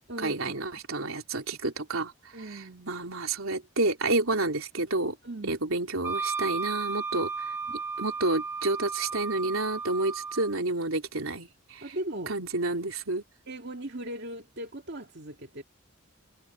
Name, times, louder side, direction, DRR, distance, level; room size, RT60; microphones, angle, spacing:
voice 1, 0.2-2.1 2.5-5.1 5.4-7.5 8.0-11.8 12.3-13.2, right 2 dB, 85° right, 3.3 m, -29 dB
voice 2, 2.3-2.9 5.2-5.6 11.8-12.4 13.5-15.6, right 1 dB, 55° right, 2.3 m, -38 dB
Wind instrument woodwind instrument, 6.0-10.5, right 4 dB, 10° right, 1.7 m, -34 dB
head